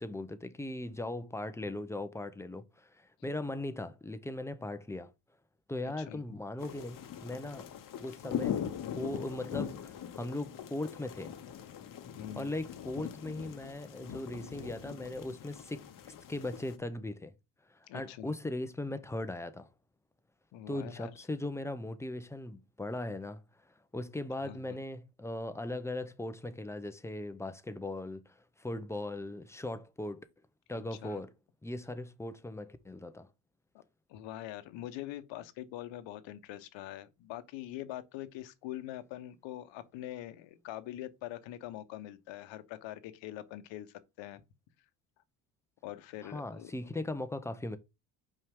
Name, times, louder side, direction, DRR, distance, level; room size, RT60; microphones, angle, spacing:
voice 1, 0.0-5.1 5.7-7.7 8.0-8.6 8.9-11.3 12.3-17.3 17.7-19.7 20.7-23.4 23.9-30.3 30.7-31.3 31.6-33.3 46.2-47.8, left 2 dB, 5° left, 0.5 m, -39 dB
voice 2, 5.8-6.2 12.2-12.5 17.9-18.3 20.5-21.1 24.4-24.8 31.0-31.2 34.1-44.4 45.8-46.9, left 13 dB, 70° left, 1.0 m, -44 dB
sound 1, 6.6-16.8, left 9 dB, 45° left, 0.9 m, -41 dB
5.7 x 4.7 x 3.6 m
cardioid pair, 105°, 47 cm